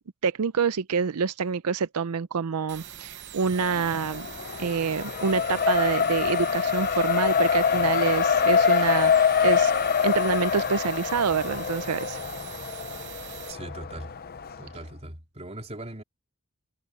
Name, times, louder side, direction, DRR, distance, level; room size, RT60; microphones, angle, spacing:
voice 1, 0.2-4.3 4.6-9.7 10.0-12.2, right 6 dB, 85° right, 0.6 m, -27 dB
sound 1, 2.7-13.5, right 10 dB, 50° right, 0.9 m, -43 dB
Race car auto racing, 3.6-14.6, left 6 dB, 45° left, 0.7 m, -25 dB
voice 2, 13.5-14.2 14.6-16.0, right 1 dB, 30° right, 4.0 m, -39 dB
head